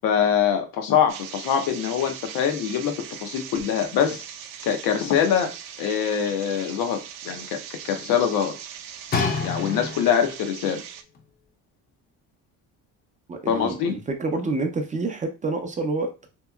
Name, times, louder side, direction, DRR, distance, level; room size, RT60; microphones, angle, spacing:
voice 1, 0.0-2.9 3.2-4.2 4.6-5.5 5.8-7.6 7.8-8.5 9.4-10.8 13.5-13.9, left 8 dB, 85° left, 5 dB, 0.7 m, -23 dB
sound 1, 1.1-11.0, right 9 dB, 75° right, 0.5 m, -40 dB
sound 2, 9.1-10.4 11.1-11.2, left 4 dB, 30° left, 0.5 m, -27 dB
voice 2, 13.3-16.3, right 3 dB, 20° right, 4 dB, 0.5 m, -28 dB
2.9 x 2.7 x 2.3 m, 0.29 s
cardioid pair, 110°, 34 cm